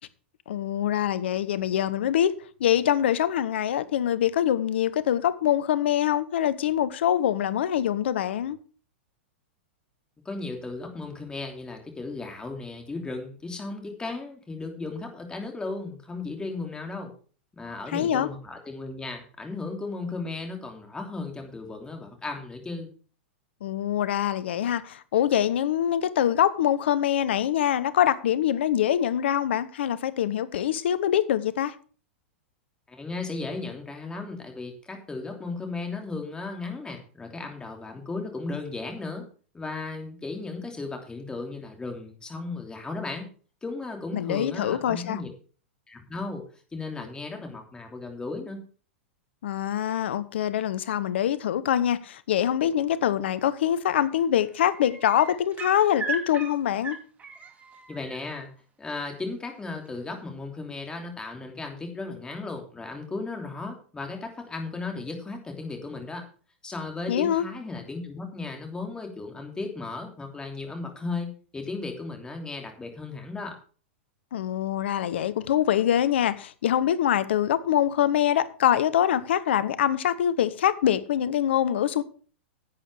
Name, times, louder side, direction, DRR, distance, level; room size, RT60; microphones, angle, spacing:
voice 1, 0.5-2.3 2.6-8.6 17.9-18.3 23.6-31.7 44.1-45.2 49.4-57.0 67.1-67.4 74.3-82.0, left 10 dB, 70° left, 1.0 m, -24 dB
voice 2, 10.2-17.1 17.5-22.9 32.9-39.2 39.5-43.3 43.6-45.3 45.9-46.4 46.7-48.6 57.9-58.5 58.8-66.2 66.6-73.5, left 3 dB, 15° left, 3.0 m, -35 dB
sound 1, 53.5-53.8 54.1-58.2 59.8-59.9, right 4 dB, 25° right, 2.6 m, -37 dB
10.5 x 8.7 x 4.8 m
hypercardioid pair, 105°, 6 cm